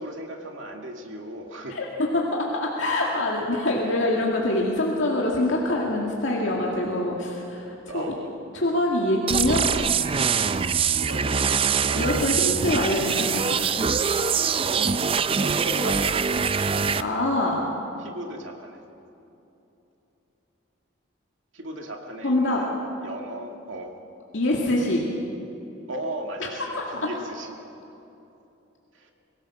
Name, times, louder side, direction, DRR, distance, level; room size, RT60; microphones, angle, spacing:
voice 1, 0.0-1.8 7.9-8.3 10.7-12.1 12.7-12.9 14.6-15.0 15.4-16.5 18.0-18.8 21.5-23.9 25.9-27.5 28.9-29.1, right 1 dB, 75° right, 2 dB, 2.3 m, -36 dB
voice 2, 1.7-2.2 2.5-7.7 7.9-8.1 8.5-9.6 12.0-13.6 17.0-17.6 22.2-22.6 24.3-25.1 26.7-26.8, left 1 dB, 70° left, -2 dB, 2.2 m, -24 dB
sound 1, 9.3-17.0, right 6 dB, 25° right, 0.4 m, -24 dB
23.0 x 18.0 x 6.2 m, 2.9 s
head